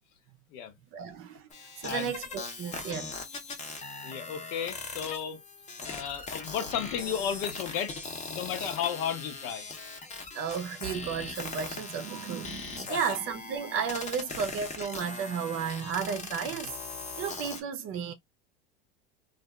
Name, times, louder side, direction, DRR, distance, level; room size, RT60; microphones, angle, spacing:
voice 1, 0.9-1.5 1.8-3.2 8.6-8.7 10.3-16.8 17.2-18.1, right 7 dB, 45° right, 0.6 m, -33 dB
sound 1, 1.5-17.6, left 4 dB, 20° left, 0.7 m, -40 dB
voice 2, 1.8-2.2 4.0-5.4 5.8-7.9 8.3-9.7 12.9-13.0, left 8 dB, 70° left, 0.9 m, -33 dB
2.7 x 2.5 x 2.2 m
supercardioid pair, 120°, 31 cm